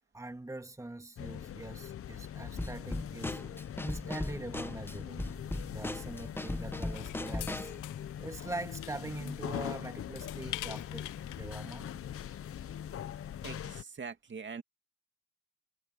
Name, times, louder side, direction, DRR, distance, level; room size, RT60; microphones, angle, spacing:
voice 1, 0.1-3.4 3.8-5.3 5.7-7.7 8.2-11.9, right 2 dB, 10° right, 2.3 m, -43 dB
sound 1, 1.2-13.8, left 10 dB, 50° left, 0.8 m, -42 dB
Drum kit / Snare drum, 2.6-7.8, left 1 dB, 5° left, 0.9 m, -38 dB
sound 2, 6.9-11.9, left 16 dB, 85° left, 0.8 m, -46 dB
voice 2, 13.4-14.6, right 5 dB, 40° right, 2.5 m, -43 dB
cardioid pair, 90°, 30 cm